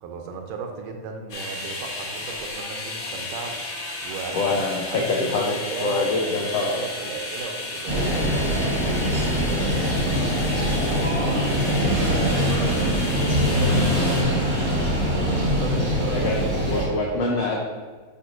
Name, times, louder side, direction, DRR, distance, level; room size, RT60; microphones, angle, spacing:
voice 1, 0.0-3.6 4.0-8.7 9.5-10.3 10.8-16.3 16.7-17.0, right 5 dB, 80° right, 3 dB, 2.1 m, -35 dB
sound 1, 1.3-14.2, left 2 dB, 50° left, 1.4 m, -33 dB
voice 2, 4.3-5.5 5.8-6.8 16.1-16.4 16.7-17.6, left 3 dB, 85° left, -2 dB, 1.4 m, -24 dB
sound 2, 7.9-16.9, equal, 45° right, 1.1 m, -23 dB
9.3 x 5.1 x 2.6 m, 1.4 s
omnidirectional pair, 3.9 m